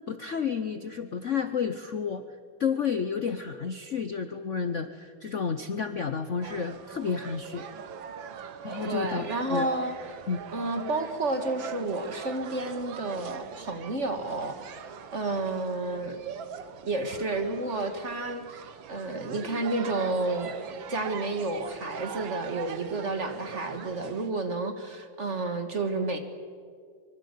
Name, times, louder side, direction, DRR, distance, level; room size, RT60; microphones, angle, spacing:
voice 1, 0.1-2.2 2.6-7.6 8.6-9.7 10.3-10.4, left 6 dB, 50° left, 10 dB, 0.9 m, -31 dB
sound 1, 6.4-24.3, right 7 dB, 70° right, 1.9 m, -41 dB
voice 2, 8.8-10.0 10.5-16.2 16.8-18.4 18.9-20.5 20.9-26.2, right 2 dB, 35° right, 7 dB, 1.9 m, -31 dB
24.5 x 23.5 x 8.4 m, 2.1 s
omnidirectional pair, 2.3 m